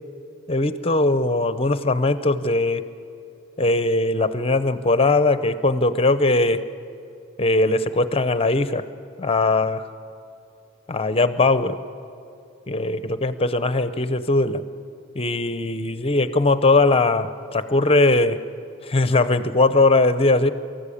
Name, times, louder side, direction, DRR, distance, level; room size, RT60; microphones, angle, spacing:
voice 1, 0.5-2.9 3.6-6.7 7.4-8.9 9.2-9.9 10.9-11.8 12.7-14.6 15.1-18.4 18.8-20.5, left 2 dB, 30° left, 13 dB, 0.7 m, -20 dB
23.5 x 14.5 x 8.5 m, 2.6 s
head